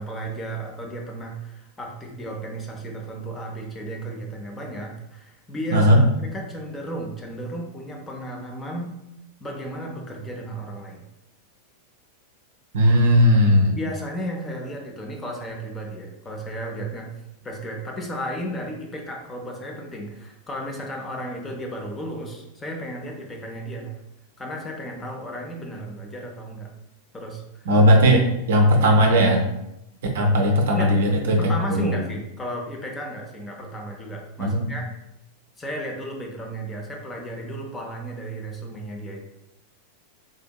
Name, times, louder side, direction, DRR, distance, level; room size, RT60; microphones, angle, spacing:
voice 1, 0.0-5.9 6.2-8.9 9.4-11.0 13.8-17.1 17.4-24.0 24.4-26.7 27.1-27.7 30.7-30.9 31.4-34.9 35.6-39.2, right 1 dB, 15° left, 0 dB, 0.6 m, -34 dB
voice 2, 5.7-6.0 12.7-13.8 27.7-29.4 30.1-31.4 31.7-32.0 34.4-34.7, equal, 60° right, 2 dB, 0.5 m, -17 dB
3.7 x 2.6 x 2.2 m, 0.88 s
figure-of-eight pair, 90°, 0 cm